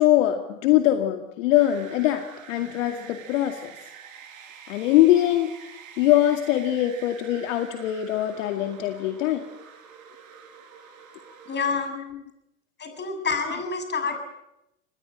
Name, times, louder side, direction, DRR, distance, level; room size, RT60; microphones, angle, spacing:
voice 1, 0.0-3.7 4.7-5.5 6.0-9.4, left 13 dB, 60° left, 6 dB, 2.2 m, -22 dB
sound 1, 1.5-11.7, right 7 dB, 65° right, 5.2 m, -46 dB
voice 2, 11.5-11.9 12.8-14.2, left 4 dB, 25° left, 6 dB, 7.3 m, -28 dB
27.0 x 20.5 x 8.9 m, 0.87 s
hypercardioid pair, 95°, 43 cm